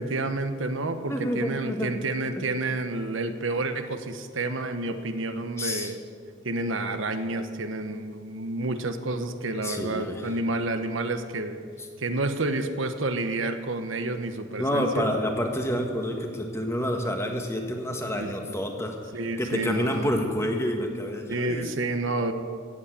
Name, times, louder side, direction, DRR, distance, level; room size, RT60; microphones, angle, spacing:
voice 1, 0.0-6.0 6.4-11.6 12.0-15.0 18.2-18.5 19.1-20.2 21.3-22.3, right 2 dB, 70° right, 8 dB, 1.0 m, -29 dB
voice 2, 1.1-2.0 2.3-2.5 5.6-5.9 9.6-10.3 14.6-19.0 19.4-21.7, equal, 15° left, 2 dB, 1.6 m, -28 dB
15.5 x 8.5 x 8.4 m, 2.1 s
head